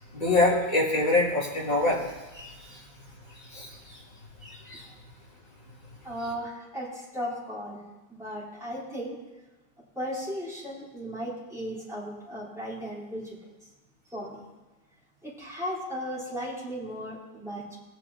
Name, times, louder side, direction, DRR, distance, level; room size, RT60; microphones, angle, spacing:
voice 1, 0.1-2.0 2.3-2.8 3.4-4.0 4.4-4.9, left 2 dB, 30° left, -6 dB, 2.9 m, -26 dB
voice 2, 6.0-7.8 8.1-9.2 10.0-13.3 14.1-14.4 15.2-17.6, equal, ahead, -8 dB, 3.8 m, -36 dB
19.0 x 9.1 x 2.8 m, 1.1 s
omnidirectional pair, 1.8 m